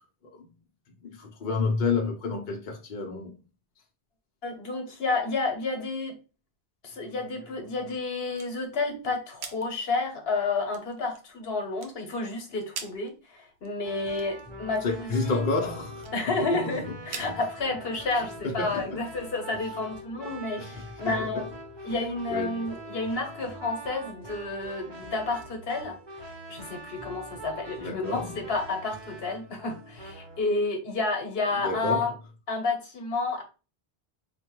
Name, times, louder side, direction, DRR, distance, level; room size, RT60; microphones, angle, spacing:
voice 1, 1.0-3.4 14.8-16.8 17.1-17.3 18.4-19.0 20.6-21.4 22.3-22.6 27.8-28.4 31.6-32.0, left 3 dB, 55° left, 0.8 m, -30 dB
voice 2, 4.4-6.1 6.8-15.5 16.1-21.5 21.8-32.1 32.5-33.4, left 3 dB, 70° left, 1.1 m, -30 dB
sound 1, 6.9-19.9, right 6 dB, 85° right, 0.9 m, -47 dB
sound 2, 13.8-30.4, right 1 dB, 30° right, 0.8 m, -43 dB
4.5 x 2.2 x 3.0 m
omnidirectional pair, 1.0 m